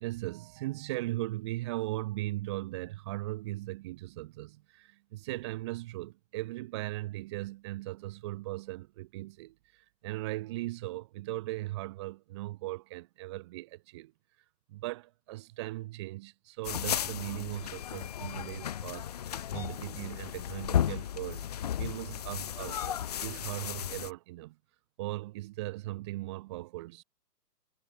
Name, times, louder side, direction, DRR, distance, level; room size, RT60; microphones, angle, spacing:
voice 1, 0.0-14.1 14.7-21.5 21.8-24.6 25.0-27.0, right 18 dB, 15° right, 1.0 m, -38 dB
sound 1, 16.6-24.1, left 10 dB, 25° left, 0.9 m, -34 dB
figure-of-eight pair, 135°, 49 cm